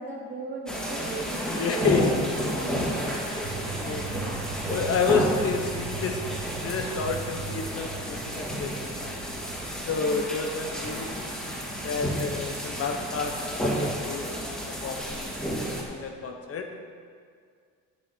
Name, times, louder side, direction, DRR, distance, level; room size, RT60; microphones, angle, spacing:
voice 1, 0.0-3.4, right 2 dB, 35° right, -4 dB, 3.1 m, -37 dB
sound 1, 0.7-15.8, equal, 5° left, 2.4 m, -31 dB
voice 2, 1.5-2.1 3.8-4.2 4.7-6.3 6.6-8.7 9.0-9.1 9.9-11.2 11.8-14.5 14.8-15.3 15.7-16.7, left 5 dB, 50° left, 4 dB, 1.1 m, -30 dB
sound 2, 3.4-9.6, right 6 dB, 60° right, 1.0 m, -38 dB
9.4 x 6.5 x 8.6 m, 2.1 s
cardioid pair, 115°, 31 cm